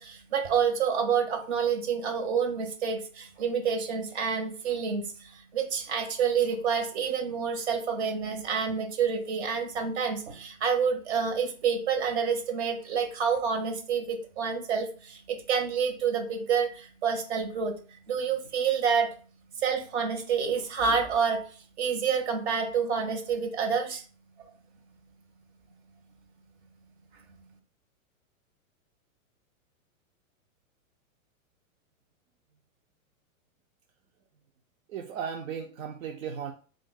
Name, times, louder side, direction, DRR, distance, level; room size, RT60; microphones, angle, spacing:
voice 1, 0.0-17.7 18.1-19.1 19.6-21.4 21.8-24.0, right 6 dB, 50° right, 4 dB, 1.2 m, -28 dB
voice 2, 34.9-36.5, right 7 dB, 70° right, 3 dB, 0.7 m, -36 dB
7.5 x 2.6 x 2.3 m, 0.40 s
supercardioid pair, 170°, 41 cm